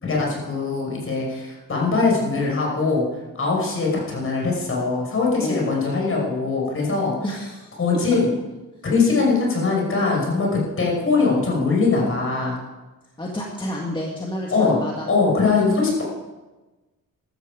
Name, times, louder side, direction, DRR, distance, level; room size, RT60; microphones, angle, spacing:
voice 1, 0.0-3.0 3.4-7.1 7.8-8.3 8.8-12.6 14.5-14.8 15.1-16.0, left 4 dB, 40° left, -2 dB, 5.6 m, -21 dB
voice 2, 5.4-5.7 7.2-7.7 9.1-9.3 13.2-15.1, left 1 dB, 15° left, -1 dB, 1.9 m, -30 dB
14.0 x 13.0 x 5.0 m, 1.2 s
cardioid pair, 110°, 32 cm